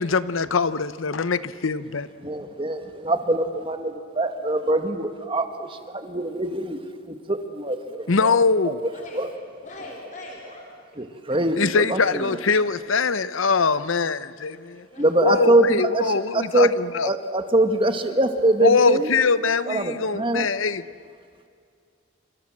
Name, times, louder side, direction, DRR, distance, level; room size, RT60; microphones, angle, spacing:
voice 1, 0.0-2.1 8.1-8.8 11.6-14.8 15.2-16.7 16.9-17.1 18.6-20.8, left 4 dB, 75° left, 0.9 m, -22 dB
voice 2, 2.2-6.8 7.1-8.4 8.6-9.3 11.0-12.4 15.0-16.7 17.0-19.1 19.7-20.5, right 1 dB, 25° right, 1.8 m, -24 dB
voice 3, 8.9-9.3 9.6-10.6 12.3-12.7 14.9-15.7, left 2 dB, 40° left, 4.0 m, -41 dB
27.5 x 26.5 x 7.5 m
head